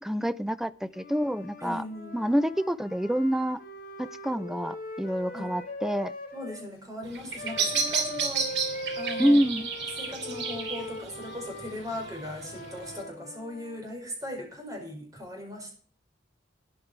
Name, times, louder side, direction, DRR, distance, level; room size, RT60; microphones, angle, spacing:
voice 1, 0.0-1.8 2.1-3.6 4.0-6.1 9.2-9.7, equal, ahead, 14 dB, 0.5 m, -27 dB
Wind instrument woodwind instrument, 0.9-6.7 7.4-13.8, left 1 dB, 50° left, 4.1 m, -41 dB
voice 2, 1.6-2.2 5.3-5.5 6.3-8.6 9.0-9.4 10.0-15.7, left 1 dB, 20° right, 2 dB, 5.5 m, -38 dB
Bird vocalization bird call bird song, 7.0-13.0, right 5 dB, 70° right, 2.7 m, -33 dB
13.0 x 10.0 x 4.6 m, 0.42 s
head